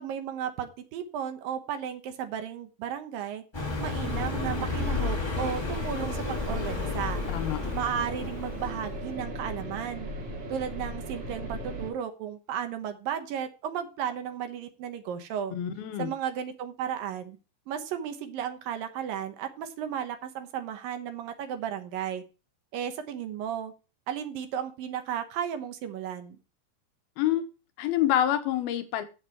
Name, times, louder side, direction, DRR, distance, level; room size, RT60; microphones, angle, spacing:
voice 1, 0.0-3.4 3.8-7.2 7.7-10.1 10.5-15.5 16.0-17.4 17.7-22.2 22.7-23.7 24.1-26.4, right 9 dB, 70° right, 7 dB, 2.8 m, -34 dB
Car passing by, 3.5-9.1, left 4 dB, 15° left, 0.9 m, -32 dB
sound 1, 4.0-11.9, right 1 dB, 45° right, 3.0 m, -37 dB
voice 2, 15.5-16.1 27.2-27.5 27.8-29.0, left 11 dB, 80° left, 9 dB, 2.9 m, -27 dB
11.0 x 8.0 x 4.6 m, 0.32 s
omnidirectional pair, 4.3 m